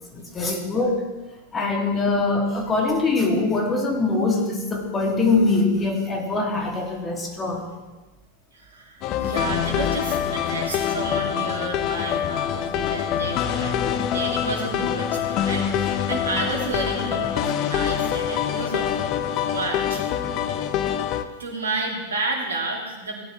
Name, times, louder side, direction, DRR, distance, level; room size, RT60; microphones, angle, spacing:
voice 1, 0.1-1.1 1.5-7.7, left 3 dB, 20° left, 0 dB, 2.8 m, -23 dB
voice 2, 8.5-19.1 19.5-20.0 20.5-20.6 20.8-21.0 21.4-23.2, right 3 dB, 70° right, -1 dB, 2.9 m, -31 dB
sound 1, 9.0-21.2, left 9 dB, 40° left, 0.8 m, -25 dB
17.5 x 9.8 x 3.5 m, 1.2 s
figure-of-eight pair, 90°, 0 cm